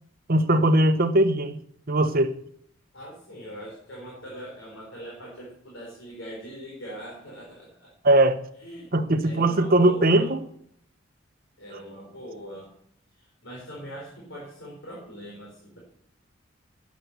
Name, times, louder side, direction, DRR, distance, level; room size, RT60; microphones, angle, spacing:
voice 1, 0.3-1.6 1.9-2.3 8.0-8.4 8.9-10.4, right 1 dB, 50° right, 1.0 m, -20 dB
voice 2, 2.9-7.9 8.6-8.9 9.2-10.3 11.6-12.7 13.2-15.8, equal, 70° left, 4.5 m, -41 dB
11.0 x 9.4 x 6.8 m
head